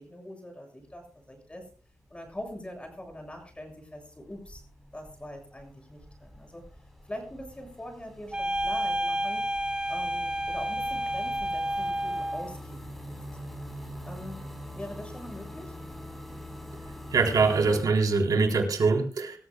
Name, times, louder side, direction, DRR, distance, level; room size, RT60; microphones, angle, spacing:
voice 1, 0.0-1.6 2.1-4.6 4.9-6.6 7.1-9.4 9.9-13.1 14.0-14.5 14.7-15.8, left 1 dB, 20° left, 4 dB, 6.8 m, -43 dB
sound 1, 0.8-1.4 1.6-17.8, left 1 dB, ahead, 4.1 m, -45 dB
sound 2, 8.3-12.5, right 1 dB, 15° right, 2.7 m, -30 dB
voice 2, 17.1-19.4, right 4 dB, 80° right, 2 dB, 3.6 m, -23 dB
25.0 x 14.5 x 2.3 m, 0.38 s
wide cardioid pair, 80°, 6 cm